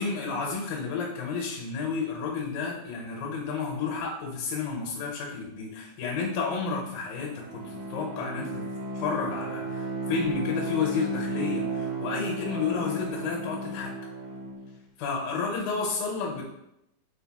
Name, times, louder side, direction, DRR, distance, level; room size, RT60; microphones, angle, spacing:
voice 1, 0.0-8.6 8.9-13.9 15.0-16.4, left 5 dB, 90° left, -1 dB, 2.6 m, -31 dB
Bowed string instrument, 7.0-14.7, right 2 dB, 70° right, 2.4 m, -34 dB
6.0 x 2.9 x 2.2 m, 0.82 s
omnidirectional pair, 3.9 m